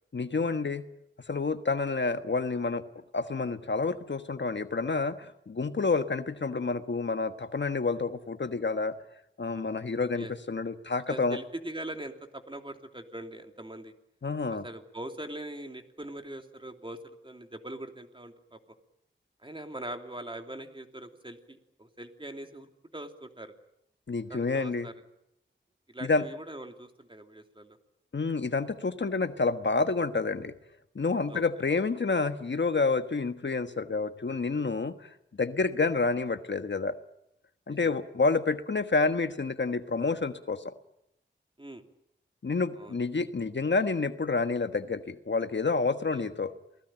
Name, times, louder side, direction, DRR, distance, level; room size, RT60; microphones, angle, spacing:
voice 1, 0.1-0.9 1.3-2.8 3.1-8.9 9.4-11.4 14.2-14.6 24.1-24.9 26.0-26.2 28.1-30.5 30.9-35.1 35.4-36.9 37.7-40.7 42.4-46.5, left 4 dB, 65° left, 9 dB, 1.3 m, -29 dB
voice 2, 11.1-13.9 14.5-18.6 19.4-23.5 24.3-24.9 25.9-27.8 31.3-31.4 37.7-38.0 41.6-41.8 42.8-43.0 46.1-46.3, right 1 dB, 25° right, 5 dB, 3.0 m, -42 dB
28.5 x 19.0 x 9.0 m, 0.81 s
wide cardioid pair, 50°, 20 cm